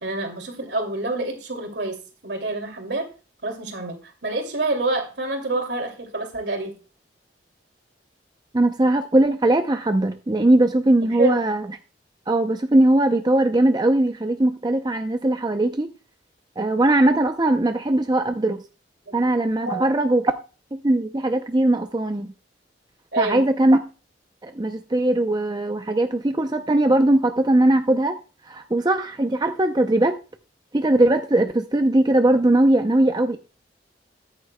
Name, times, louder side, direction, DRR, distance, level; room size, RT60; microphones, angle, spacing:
voice 1, 0.0-2.0 2.2-3.1 3.4-6.7 11.2-11.4 19.1-19.2 19.7-19.9 23.1-23.4, right 2 dB, 65° right, 4 dB, 2.6 m, -27 dB
voice 2, 8.5-11.7 12.3-15.9 16.6-18.6 19.1-20.3 20.8-22.3 23.2-23.8 24.4-28.2 28.5-30.2 30.7-33.4, right 1 dB, 20° right, 7 dB, 0.6 m, -20 dB
14.0 x 9.7 x 2.2 m, 0.34 s
head